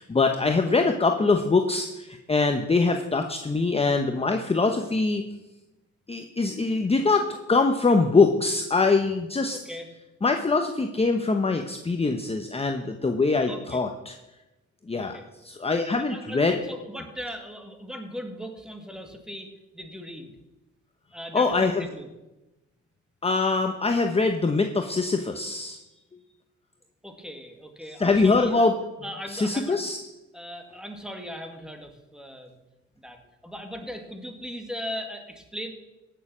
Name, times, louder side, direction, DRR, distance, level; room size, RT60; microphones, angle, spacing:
voice 1, 0.0-5.2 6.1-9.6 10.2-14.1 14.9-15.2 15.4-16.5 21.3-21.9 23.2-25.8 28.0-28.7 29.3-30.0, left 3 dB, 20° left, 5 dB, 0.9 m, -23 dB
voice 2, 9.5-9.9 13.5-13.8 14.9-15.3 16.0-20.3 21.1-22.1 27.0-28.6 29.0-29.8 30.3-32.6 33.0-35.7, equal, ahead, 5 dB, 2.0 m, -39 dB
16.0 x 6.8 x 6.2 m, 0.99 s
cardioid pair, 90°, 30 cm